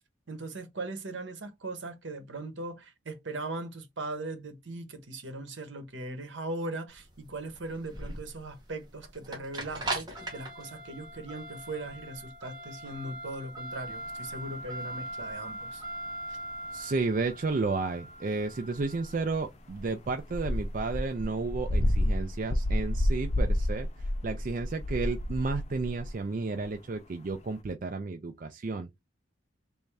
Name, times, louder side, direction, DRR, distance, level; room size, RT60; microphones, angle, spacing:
voice 1, 0.3-15.8 16.3-16.4, right 2 dB, 75° right, 0.9 m, -39 dB
sound 1, 6.9-21.0, right 2 dB, 20° right, 1.0 m, -41 dB
sound 2, 14.0-14.1 17.6-17.7 18.8-19.4 19.7-26.2 26.6-26.7 27.3-27.4, left 1 dB, 35° left, 0.5 m, -30 dB
voice 2, 16.7-23.9 24.2-28.9, right 3 dB, 45° right, 0.4 m, -32 dB
3.4 x 2.6 x 3.2 m
head